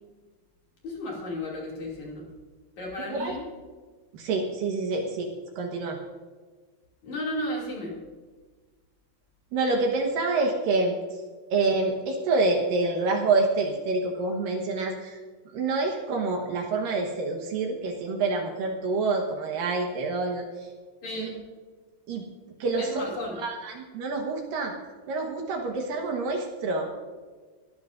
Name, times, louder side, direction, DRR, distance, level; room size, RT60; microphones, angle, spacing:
voice 1, 0.8-2.3 2.8-3.4 7.0-8.0 21.0-21.4 22.8-23.4, left 1 dB, 40° left, -3 dB, 3.2 m, -34 dB
voice 2, 4.1-6.0 9.5-11.2 11.5-15.2 15.5-20.7 21.2-21.3 22.1-22.2 22.6-23.0 23.4-24.7 25.1-26.9, right 3 dB, 75° right, 1 dB, 2.0 m, -27 dB
24.0 x 13.5 x 2.6 m, 1.4 s
omnidirectional pair, 6.0 m